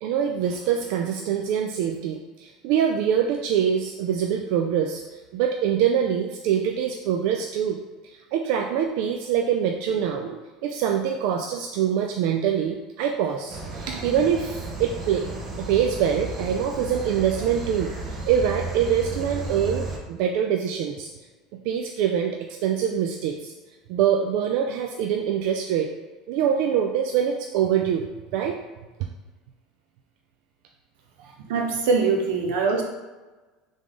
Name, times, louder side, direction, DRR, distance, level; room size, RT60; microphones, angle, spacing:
voice 1, 0.0-5.0 5.3-15.3 15.6-21.1 21.6-23.5 23.9-25.9 26.3-28.6 31.2-31.4, right 8 dB, 65° right, 3 dB, 0.3 m, -24 dB
sound 1, 13.5-20.0, right 2 dB, 30° right, 0.6 m, -34 dB
voice 2, 31.5-32.8, right 4 dB, 90° right, 2 dB, 0.8 m, -22 dB
3.6 x 3.3 x 3.8 m, 1.2 s
cardioid pair, 155°, 0 cm